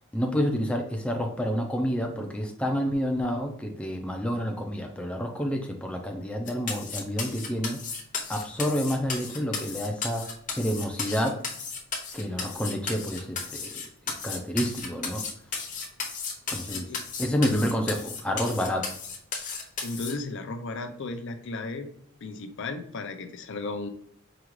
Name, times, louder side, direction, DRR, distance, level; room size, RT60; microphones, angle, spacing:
voice 1, 0.1-7.8 8.3-10.2 10.6-11.4 12.1-13.8 14.1-15.2 16.5-16.9 17.2-18.9, equal, 5° left, 2 dB, 0.4 m, -29 dB
sound 1, 6.5-20.1, left 5 dB, 35° left, 0.8 m, -34 dB
voice 2, 19.8-21.9 22.2-23.9, left 3 dB, 60° left, 6 dB, 0.5 m, -35 dB
4.9 x 2.4 x 3.0 m, 0.67 s
head